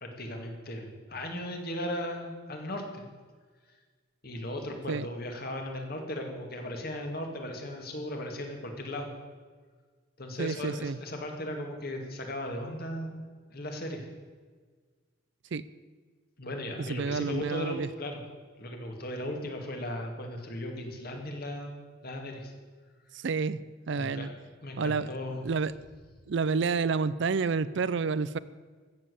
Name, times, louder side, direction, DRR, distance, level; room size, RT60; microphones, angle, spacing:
voice 1, 0.0-3.0 4.2-9.1 10.2-13.2 13.5-14.1 16.4-18.2 18.6-21.8 22.0-22.5 24.0-24.3 24.6-25.4, left 1 dB, 50° left, 3 dB, 2.2 m, -37 dB
voice 2, 10.4-11.0 15.5-15.6 16.8-17.9 23.1-23.6 23.9-24.3 24.8-25.1 25.4-25.7 26.3-28.4, right 4 dB, 60° right, 17 dB, 0.5 m, -29 dB
14.5 x 7.5 x 8.2 m, 1.5 s
head